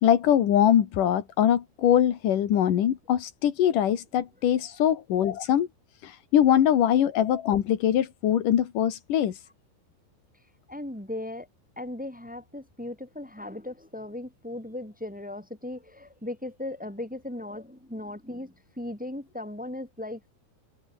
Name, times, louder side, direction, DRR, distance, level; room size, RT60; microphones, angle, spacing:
voice 1, 0.0-5.7 6.0-9.4, left 10 dB, 55° left, 2.9 m, -22 dB
voice 2, 10.7-11.5 11.7-20.3, left 1 dB, ahead, 3.0 m, -37 dB
omnidirectional pair, 5.2 m